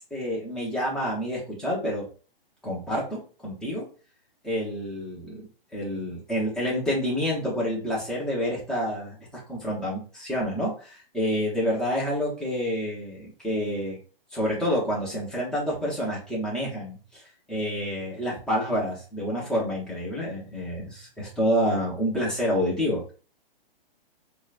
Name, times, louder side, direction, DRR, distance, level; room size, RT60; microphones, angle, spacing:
voice 1, 0.1-2.0 2.6-3.8 4.4-5.5 5.7-14.0 14.3-17.2 17.5-23.1, equal, ahead, -6 dB, 0.8 m, -28 dB
4.6 x 2.2 x 2.4 m, 0.38 s
hypercardioid pair, 150°, 29 cm